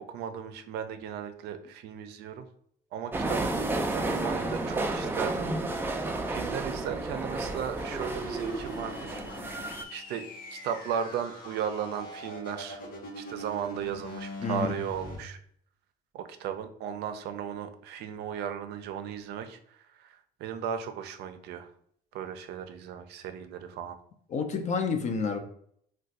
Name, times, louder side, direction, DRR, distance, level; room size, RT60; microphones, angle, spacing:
voice 1, 0.0-2.5 2.9-3.4 3.9-5.5 5.9-10.3 10.5-12.8 13.2-15.4 16.1-21.7 22.1-24.0, right 8 dB, 80° right, 0.4 m, -36 dB
sound 1, 3.1-9.8, right 2 dB, 15° right, 0.3 m, -31 dB
sound 2, 7.8-15.2, left 1 dB, 60° left, 0.9 m, -42 dB
voice 2, 14.4-14.8 24.3-25.4, left 5 dB, 45° left, 0.5 m, -29 dB
2.4 x 2.2 x 3.9 m
cardioid pair, 110°, 17 cm